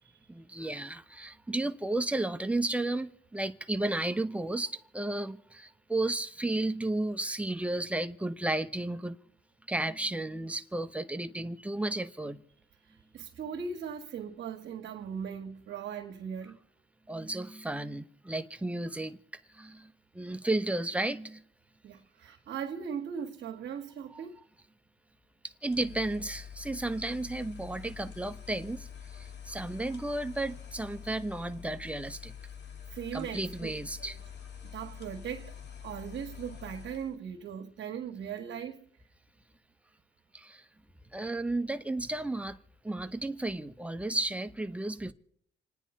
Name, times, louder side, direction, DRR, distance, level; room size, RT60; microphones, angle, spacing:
voice 1, 0.3-9.2 9.7-12.4 17.1-19.2 19.5-21.5 24.1-24.2 25.6-32.3 33.1-34.2 40.3-40.6 41.1-42.6 42.8-45.1, right 2 dB, 5° right, 1.0 m, -33 dB
voice 2, 12.8-16.6 21.8-24.4 32.9-33.7 34.0-34.1 34.6-35.6 35.8-38.9 43.0-43.1, right 7 dB, 65° right, 1.8 m, -39 dB
sound 1, 25.6-37.2, left 8 dB, 60° left, 2.3 m, -46 dB
28.5 x 9.8 x 4.4 m
cardioid pair, 90°, 20 cm